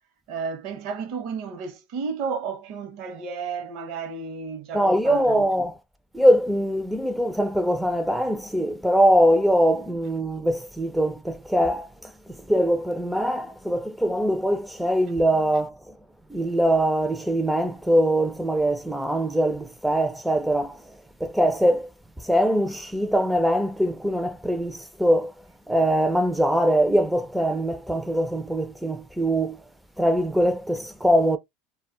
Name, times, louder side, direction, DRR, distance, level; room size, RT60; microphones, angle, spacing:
voice 1, 0.3-5.4, right 5 dB, 60° right, 0.7 m, -32 dB
voice 2, 4.7-5.8 6.1-11.9 12.5-15.7 16.3-20.8 21.2-21.9 22.2-25.3 25.7-29.6 30.0-31.4, equal, 5° right, 0.3 m, -22 dB
2.1 x 2.0 x 3.7 m
supercardioid pair, 115°, 0 cm